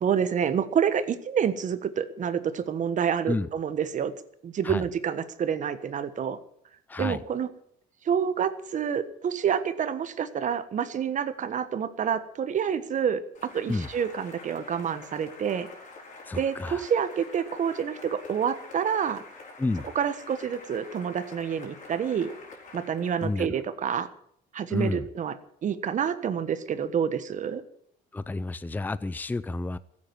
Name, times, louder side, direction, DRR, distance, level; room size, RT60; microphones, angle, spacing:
voice 1, 0.0-4.1 4.4-6.4 7.0-7.5 8.0-15.7 16.4-19.2 19.9-22.3 22.7-24.1 24.5-27.6, right 8 dB, 45° right, 12 dB, 1.4 m, -28 dB
voice 2, 6.9-7.2 13.7-13.9 16.3-16.8 19.6-19.9 23.2-23.5 24.7-25.0 28.1-29.8, left 2 dB, 10° left, 16 dB, 0.5 m, -30 dB
Cheering / Applause, 13.3-23.4, left 3 dB, 45° left, 4.9 m, -47 dB
15.5 x 8.7 x 9.5 m, 0.69 s
cardioid pair, 110°, 17 cm